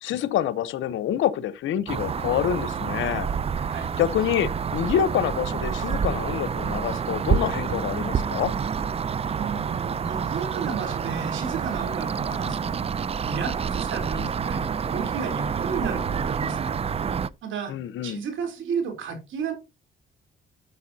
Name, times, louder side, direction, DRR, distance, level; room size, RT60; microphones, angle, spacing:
voice 1, 0.0-3.3 4.0-8.5 17.7-18.2, left 10 dB, 80° left, 0.9 m, -26 dB
sound 1, 1.9-17.3, right 6 dB, 30° right, 0.4 m, -28 dB
voice 2, 9.4-12.8 13.2-16.7 17.4-17.7 18.0-19.5, right 5 dB, 75° right, 3.6 m, -33 dB
11.5 x 6.8 x 2.8 m
cardioid pair, 90°, 20 cm